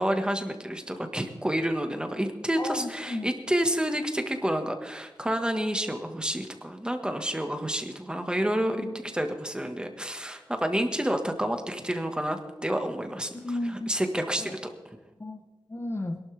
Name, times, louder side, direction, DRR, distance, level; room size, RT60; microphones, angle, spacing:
voice 1, 0.0-13.3 13.9-14.6, right 1 dB, 10° right, 6 dB, 1.4 m, -29 dB
voice 2, 2.6-3.3 8.8-8.9 13.3-14.0 14.4-14.6 15.2-15.4 15.7-16.2, left 2 dB, 30° left, 7 dB, 0.8 m, -33 dB
21.5 x 12.0 x 3.4 m, 1.1 s
wide cardioid pair, 95°, 8 cm